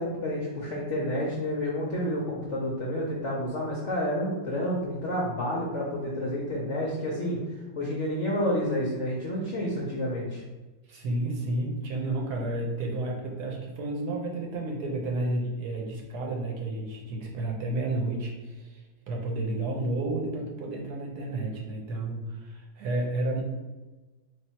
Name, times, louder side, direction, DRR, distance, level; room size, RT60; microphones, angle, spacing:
voice 1, 0.0-10.4, equal, 60° left, -4 dB, 0.8 m, -30 dB
voice 2, 10.9-23.4, right 2 dB, 65° right, 0 dB, 1.1 m, -31 dB
3.3 x 2.7 x 4.2 m, 1.2 s
omnidirectional pair, 1.9 m